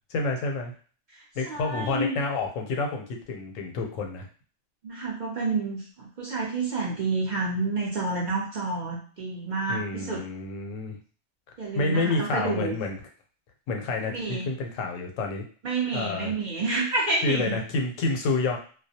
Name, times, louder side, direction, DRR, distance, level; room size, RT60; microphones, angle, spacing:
voice 1, 0.1-0.7 1.4-4.3 9.7-11.0 11.7-13.0 13.7-15.4 15.9-16.3 17.2-18.6, left 3 dB, 90° left, 3 dB, 1.0 m, -29 dB
voice 2, 1.4-2.2 4.8-10.2 11.6-12.8 14.0-14.5 15.6-17.6, right 3 dB, 55° right, -3 dB, 0.5 m, -29 dB
2.2 x 2.1 x 2.7 m, 0.40 s
omnidirectional pair, 1.3 m